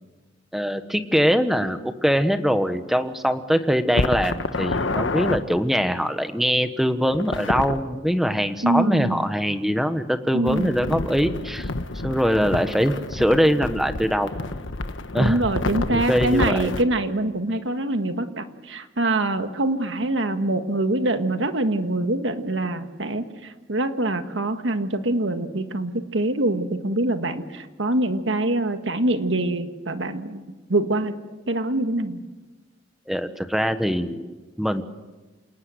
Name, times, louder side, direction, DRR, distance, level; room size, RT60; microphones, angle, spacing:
voice 1, 0.5-11.7 12.0-14.3 15.1-15.4 15.9-16.6 33.1-34.8, equal, ahead, 9 dB, 1.1 m, -22 dB
sound 1, 3.9-5.4 7.1-7.8 10.5-16.8, left 2 dB, 85° left, 1.3 m, -28 dB
voice 2, 8.6-9.2 10.3-10.7 15.2-30.4 30.7-31.2 31.5-32.2, right 2 dB, 75° right, 8 dB, 1.7 m, -24 dB
28.0 x 18.5 x 7.9 m, 1.2 s
head